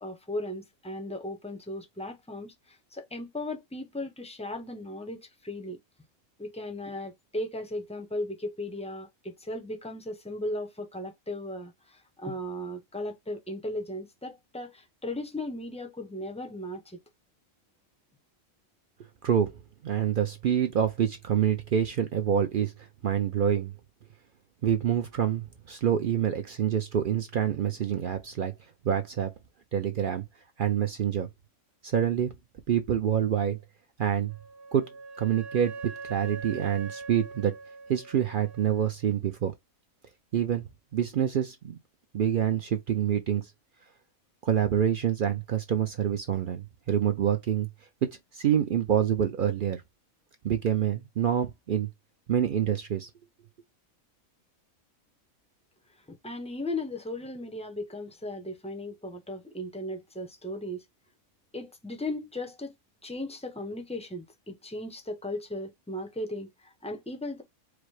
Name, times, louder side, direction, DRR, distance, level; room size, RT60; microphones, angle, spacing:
voice 1, 0.0-5.8 6.4-17.0 56.1-60.8 61.5-62.7 63.0-67.4, left 1 dB, 10° left, 0.4 m, -36 dB
voice 2, 19.2-23.7 24.6-28.5 28.8-29.3 29.7-30.2 30.6-31.3 31.8-32.3 32.7-33.6 34.0-34.3 34.7-34.8 35.2-35.7 36.1-37.5 37.9-39.5 40.3-41.8 42.1-43.5 44.4-47.7 48.0-49.8 50.4-51.9 52.3-53.1, right 9 dB, 70° right, 0.5 m, -27 dB
Wind instrument woodwind instrument, 34.3-38.9, right 4 dB, 50° right, 1.0 m, -42 dB
4.9 x 2.0 x 4.6 m
omnidirectional pair, 1.5 m